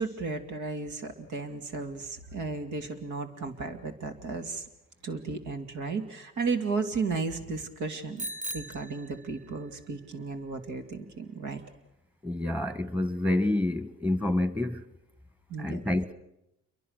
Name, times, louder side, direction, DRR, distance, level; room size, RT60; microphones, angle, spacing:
voice 1, 0.0-4.6 5.0-8.3 8.5-11.6 15.5-15.8, right 4 dB, 75° right, 2.8 m, -34 dB
Bicycle bell, 8.2-9.7, right 1 dB, 25° right, 1.1 m, -39 dB
voice 2, 12.2-14.8 15.6-16.1, left 1 dB, 5° right, 1.6 m, -28 dB
28.5 x 23.0 x 6.6 m
cardioid pair, 90°, 30 cm